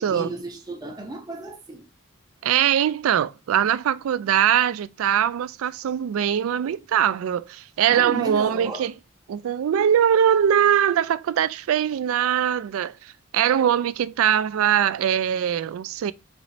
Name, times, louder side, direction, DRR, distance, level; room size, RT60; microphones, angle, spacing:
voice 1, 0.0-1.9 7.9-8.9, right 2 dB, 20° right, 0.7 m, -34 dB
voice 2, 2.4-8.9 9.3-16.1, right 9 dB, 85° right, 0.3 m, -22 dB
4.1 x 2.9 x 2.6 m
head